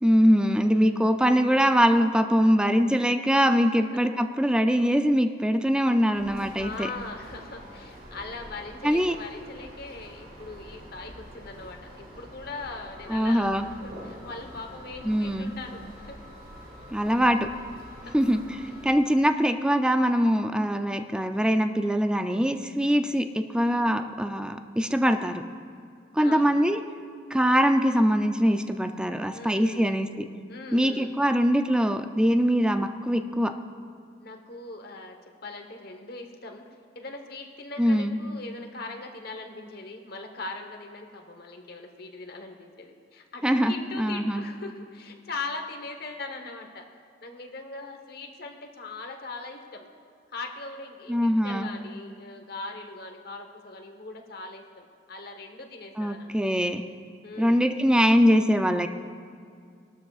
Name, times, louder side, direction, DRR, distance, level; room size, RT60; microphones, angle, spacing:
voice 1, 0.0-6.9 8.8-9.2 13.1-13.7 15.0-15.5 16.9-17.5 18.1-25.4 26.1-26.8 27.3-30.3 30.7-33.5 37.8-38.2 43.4-44.4 51.1-51.7 56.0-56.8 57.4-58.9, equal, 5° right, 7 dB, 0.4 m, -23 dB
voice 2, 0.7-1.5 3.8-3.9 6.6-16.2 18.0-18.1 19.1-19.4 26.2-26.8 29.3-30.0 30.5-31.1 34.2-36.6 36.9-46.9 47.2-49.9 50.3-56.4 57.2-57.6, left 3 dB, 55° left, 4 dB, 1.1 m, -40 dB
sound 1, 6.1-18.9, equal, 55° right, 2.3 m, -46 dB
19.5 x 12.5 x 2.4 m, 2.3 s
head